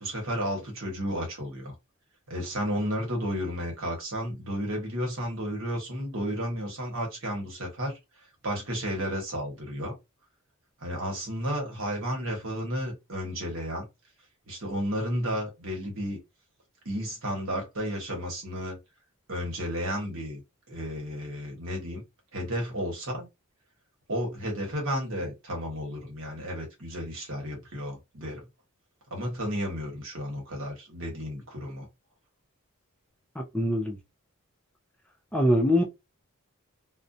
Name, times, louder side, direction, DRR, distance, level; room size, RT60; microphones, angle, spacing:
voice 1, 0.0-1.7 2.3-8.0 8.4-9.9 10.8-13.8 14.5-16.2 16.8-18.8 19.3-20.4 20.7-22.0 22.3-23.3 24.1-28.4 29.1-31.9, equal, 65° right, 1.1 m, -32 dB
voice 2, 33.4-34.0 35.3-35.8, equal, 5° left, 0.4 m, -23 dB
2.5 x 2.1 x 2.6 m
head